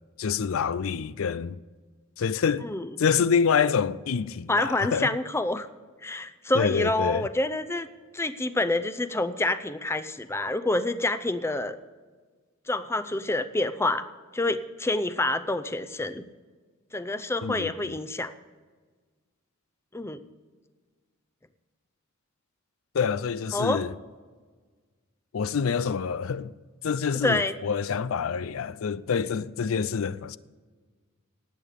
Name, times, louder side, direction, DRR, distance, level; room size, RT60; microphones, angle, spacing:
voice 1, 0.2-1.6 2.2-2.7 3.0-5.1 6.5-7.3 17.4-17.9 22.9-23.9 25.3-26.5 26.8-30.4, left 6 dB, 75° left, 0.4 m, -27 dB
voice 2, 4.5-5.7 6.0-7.9 8.1-11.8 12.7-14.1 14.3-16.2 16.9-18.3 19.9-20.2 23.5-23.8 27.2-27.5, left 2 dB, 10° left, 0.5 m, -27 dB
18.5 x 8.4 x 5.1 m
head